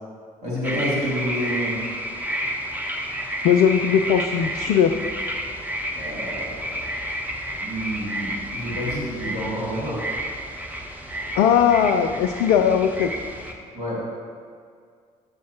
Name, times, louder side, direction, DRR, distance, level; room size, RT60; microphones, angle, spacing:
voice 1, 0.4-1.8 6.0-6.6 7.6-10.0 13.7-14.0, equal, 85° right, -7 dB, 2.2 m, -28 dB
sound 1, 0.6-13.5, equal, 10° right, 1.1 m, -31 dB
voice 2, 3.4-4.9 11.4-13.1, left 8 dB, 60° left, 5 dB, 0.4 m, -19 dB
9.8 x 7.2 x 2.9 m, 2.1 s
figure-of-eight pair, 45°, 19 cm